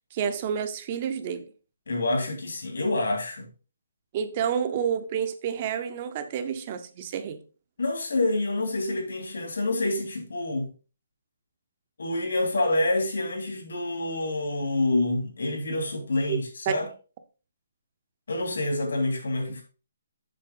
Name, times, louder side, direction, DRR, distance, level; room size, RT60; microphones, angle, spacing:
voice 1, 0.1-1.5 4.1-7.4 16.3-16.7, right 8 dB, 20° right, 0.7 m, -29 dB
voice 2, 1.9-3.5 7.8-10.7 12.0-16.8 18.3-19.6, left 2 dB, 75° left, 3.2 m, -27 dB
7.6 x 6.8 x 3.8 m
hypercardioid pair, 180°, 0 cm